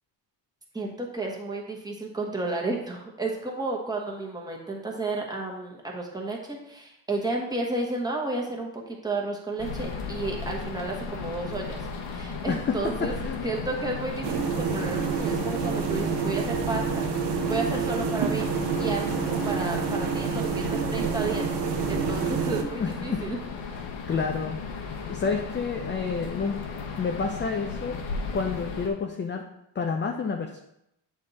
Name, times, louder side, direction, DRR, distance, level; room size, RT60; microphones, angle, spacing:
voice 1, 0.7-13.2 13.4-17.0 17.5-18.4 18.8-21.5 21.9-23.4, right 2 dB, 10° right, -2 dB, 1.1 m, -32 dB
sound 1, 9.6-28.9, left 4 dB, 85° left, 1.1 m, -35 dB
voice 2, 12.5-13.4 22.8-23.2 24.1-24.8 25.1-26.6 27.0-28.0 28.3-29.4 29.8-30.6, left 5 dB, 25° left, 4 dB, 0.4 m, -29 dB
sound 2, 14.2-22.6, right 6 dB, 65° right, 0.7 m, -28 dB
8.5 x 3.5 x 4.0 m, 0.81 s
cardioid pair, 140°, 45 cm